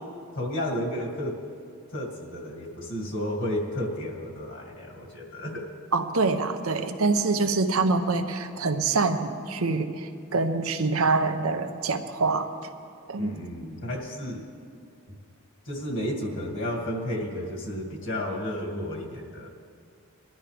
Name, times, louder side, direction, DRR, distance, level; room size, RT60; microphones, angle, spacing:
voice 1, 0.3-1.4 1.9-5.7 13.2-14.4 15.7-19.5, left 1 dB, 55° left, -1 dB, 2.3 m, -32 dB
voice 2, 5.9-12.5 13.1-13.4, right 3 dB, 75° right, 7 dB, 0.8 m, -25 dB
21.5 x 12.0 x 3.4 m, 2.3 s
head